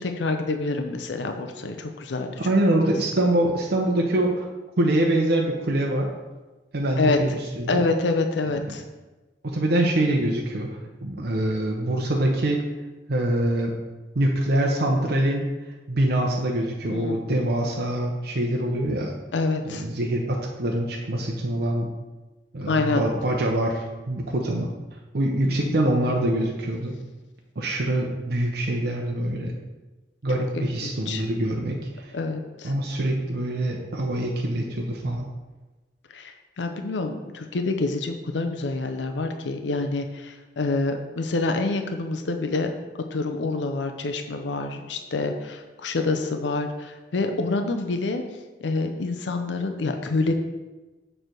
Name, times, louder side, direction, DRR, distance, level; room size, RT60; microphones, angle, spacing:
voice 1, 0.0-2.4 7.0-7.2 7.7-8.8 16.9-17.5 19.3-19.8 22.7-23.0 25.4-25.9 30.5-31.2 32.1-32.7 36.1-42.7 43.1-48.2 48.6-50.3, left 3 dB, 80° left, 6 dB, 0.5 m, -27 dB
voice 2, 2.4-4.5 4.8-6.1 6.7-7.8 8.6-8.8 9.4-10.7 11.0-12.6 13.1-13.7 14.1-15.5 15.9-19.1 19.7-21.9 22.5-24.7 25.1-27.0 27.6-29.5 30.2-32.1 32.6-35.3, right 1 dB, 60° right, 0 dB, 0.7 m, -24 dB
6.6 x 3.3 x 6.0 m, 1.2 s
head